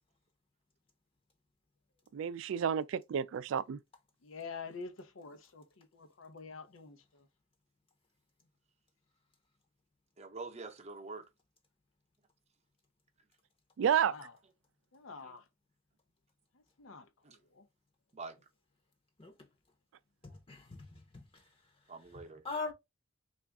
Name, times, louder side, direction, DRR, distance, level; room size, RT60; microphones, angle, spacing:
voice 1, 2.1-3.8 13.8-14.1, right 8 dB, 75° right, 0.3 m, -31 dB
voice 2, 4.2-7.2 14.1-14.3 14.9-15.4 16.8-17.1 17.5-17.6, left 4 dB, 85° left, 0.6 m, -47 dB
voice 3, 10.2-11.3 15.2-15.3 17.2-17.4 18.1-18.4 21.9-22.4, right 3 dB, 35° right, 0.7 m, -45 dB
voice 4, 20.2-21.4 22.1-22.7, left 3 dB, 30° left, 0.7 m, -42 dB
3.4 x 2.4 x 3.4 m
head